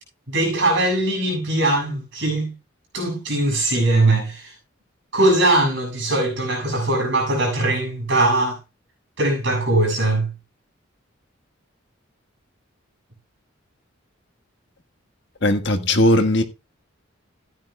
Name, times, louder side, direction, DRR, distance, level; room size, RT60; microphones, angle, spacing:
voice 1, 0.3-2.5 2.9-4.5 5.1-8.6 9.2-10.3, right 2 dB, 60° right, 7.5 m, -20 dB
voice 2, 15.4-16.4, left 1 dB, 60° left, 1.6 m, -18 dB
15.5 x 10.5 x 2.3 m
head